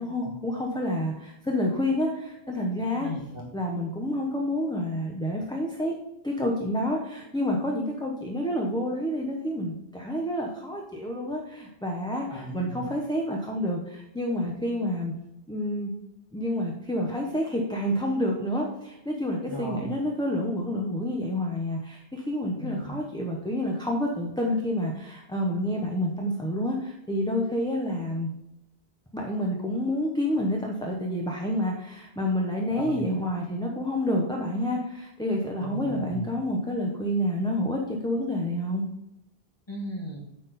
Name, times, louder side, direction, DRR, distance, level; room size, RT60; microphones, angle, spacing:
voice 1, 0.0-3.1 3.5-5.9 6.2-15.1 15.5-15.9 16.3-28.3 29.1-38.8, left 1 dB, 5° left, -1 dB, 0.8 m, -29 dB
voice 2, 3.0-3.4 12.3-12.8 19.5-19.9 22.6-22.9 32.7-33.3 35.6-36.3 39.7-40.2, equal, 25° left, -3 dB, 2.1 m, -36 dB
7.5 x 5.9 x 4.2 m, 0.87 s
omnidirectional pair, 1.1 m